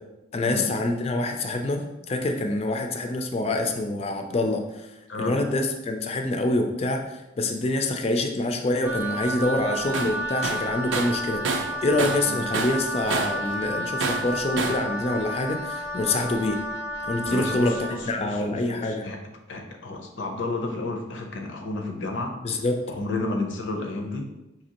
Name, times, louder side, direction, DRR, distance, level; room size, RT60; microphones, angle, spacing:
voice 1, 0.3-4.6 5.2-7.0 7.4-16.6 17.0-17.7 18.1-19.1 22.4-22.8, left 2 dB, 30° left, 4 dB, 0.4 m, -26 dB
Wind instrument woodwind instrument, 8.8-18.0, equal, 10° right, 0.6 m, -31 dB
Tools, 9.9-10.2 10.4-12.3 12.5-13.4 14.0-14.9, right 4 dB, 85° right, 0.5 m, -28 dB
voice 2, 17.3-19.2 19.5-22.3 22.9-24.3, left 2 dB, 85° left, 4 dB, 0.6 m, -31 dB
5.0 x 2.8 x 2.9 m, 0.98 s
head